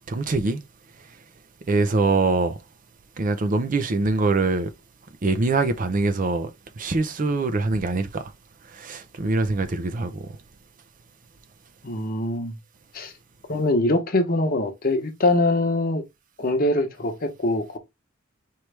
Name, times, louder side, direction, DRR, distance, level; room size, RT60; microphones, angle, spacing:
voice 1, 0.1-0.6 1.7-2.6 3.2-4.7 5.2-6.5 6.8-8.3 8.7-10.3, right 3 dB, 40° right, 0.5 m, -23 dB
voice 2, 11.8-12.5 12.9-13.1 13.5-16.0 16.4-17.8, left 2 dB, 45° left, 0.9 m, -23 dB
4.6 x 3.1 x 3.2 m
head